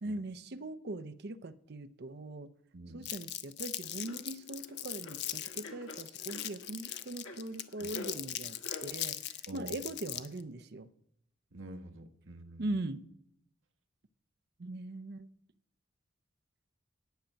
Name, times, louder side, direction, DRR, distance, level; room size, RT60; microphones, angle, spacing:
voice 1, 0.0-2.5 2.9-10.9 12.6-13.0 14.6-15.3, right 2 dB, 55° right, 13 dB, 0.6 m, -41 dB
voice 2, 2.7-3.1 7.8-7.9 9.5-9.8 11.5-12.8, right 1 dB, 80° right, 7 dB, 1.1 m, -47 dB
Crumpling crinkling, 3.0-10.4, left 12 dB, 60° left, 0.6 m, -40 dB
sound 1, 3.8-8.9, left 2 dB, 85° left, 1.9 m, -48 dB
10.5 x 8.6 x 6.4 m, 0.73 s
head